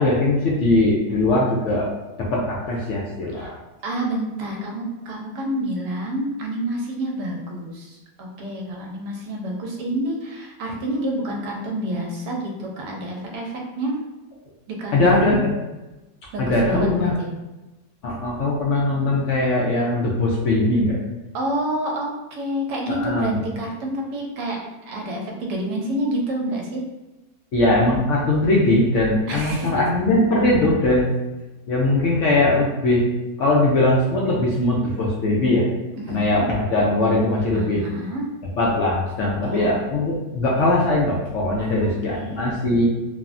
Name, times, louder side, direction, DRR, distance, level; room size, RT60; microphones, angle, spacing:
voice 1, 0.0-1.9 2.2-3.5 14.9-15.5 16.4-17.1 18.0-21.0 22.9-23.4 27.5-31.1 31.7-33.0 33.4-35.7 36.1-37.8 38.6-42.9, left 2 dB, 80° left, -4 dB, 0.6 m, -20 dB
voice 2, 3.8-14.0 14.7-15.4 16.3-16.9 17.2-17.3 21.3-24.6 24.8-26.8 29.3-29.9 30.6-30.7 36.0-36.5 37.5-38.3 39.4-39.8 41.6-42.8, right 1 dB, 85° right, 0 dB, 1.2 m, -28 dB
3.4 x 2.0 x 2.4 m, 1.1 s
omnidirectional pair, 1.8 m